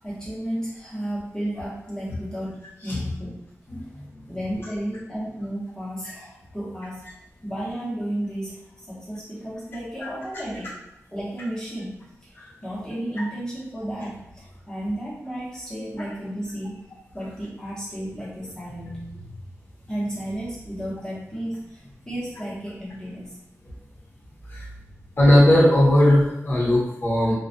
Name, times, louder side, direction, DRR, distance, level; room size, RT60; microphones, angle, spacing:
voice 1, 0.0-3.3 4.3-7.0 7.4-8.6 8.8-10.8 11.1-12.3 12.6-16.8 17.1-19.3 19.9-23.4 24.6-24.9, right 1 dB, 15° left, -8 dB, 0.8 m, -33 dB
voice 2, 3.7-4.0 24.5-24.7 25.2-27.3, left 1 dB, 40° left, -5 dB, 0.8 m, -18 dB
2.3 x 2.1 x 2.5 m, 0.84 s
wide cardioid pair, 110°, 6 cm